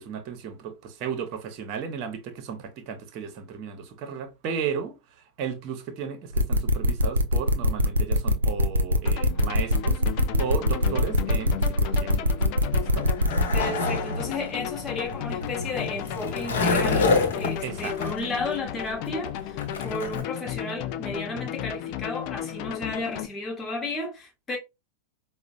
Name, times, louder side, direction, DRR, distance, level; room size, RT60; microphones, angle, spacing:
voice 1, 0.0-12.5 12.7-13.1 17.6-18.0, right 7 dB, 40° right, 0.7 m, -34 dB
sound 1, 6.3-13.6, left 1 dB, 75° right, 0.4 m, -22 dB
sound 2, 9.1-23.3, left 11 dB, 45° left, 0.3 m, -34 dB
Skateboard, 12.7-20.2, left 3 dB, 60° left, 0.9 m, -28 dB
voice 2, 13.5-24.6, left 2 dB, 15° left, 1.0 m, -33 dB
4.8 x 2.1 x 2.4 m
figure-of-eight pair, 90°, 0 cm